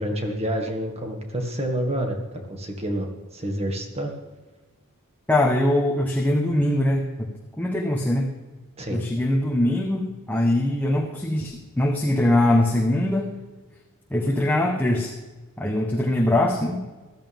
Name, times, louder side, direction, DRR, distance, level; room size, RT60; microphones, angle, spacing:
voice 1, 0.0-3.1 3.3-4.1 8.8-9.0, right 1 dB, 30° right, 3 dB, 2.0 m, -28 dB
voice 2, 5.3-8.3 8.9-13.3 14.1-15.1 15.6-16.8, left 1 dB, 5° left, -1 dB, 1.2 m, -22 dB
15.0 x 13.5 x 3.6 m, 1.2 s
head